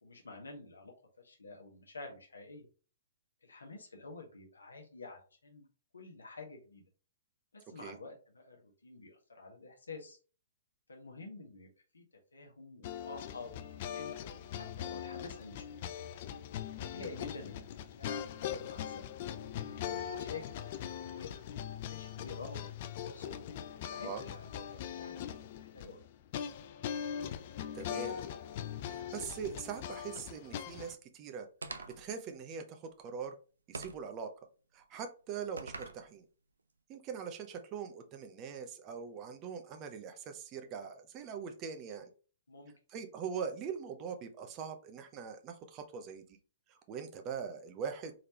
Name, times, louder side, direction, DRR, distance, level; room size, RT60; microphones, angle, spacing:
voice 1, 0.0-2.6 3.4-5.7 5.9-6.8 7.5-10.2 10.9-11.7 11.9-12.0 12.3-13.5 13.9-14.1 14.5-15.6 16.8-19.1 19.7-20.7 21.1-22.7 23.0-23.4 23.9-26.0 42.5-42.7, left 3 dB, 80° left, 1 dB, 1.0 m, -49 dB
sound 1, 12.8-30.9, left 9 dB, 45° left, 0.4 m, -41 dB
voice 2, 27.7-28.2 28.9-31.5 31.9-33.4 33.7-34.3 34.7-36.2 36.9-42.1 42.9-46.2 46.7-48.1, right 6 dB, 30° right, 6 dB, 0.7 m, -42 dB
sound 2, 31.6-32.1 33.7-34.1 35.6-36.0, right 3 dB, 80° right, 0.5 m, -43 dB
3.8 x 3.3 x 2.9 m, 0.37 s
figure-of-eight pair, 120°, 0 cm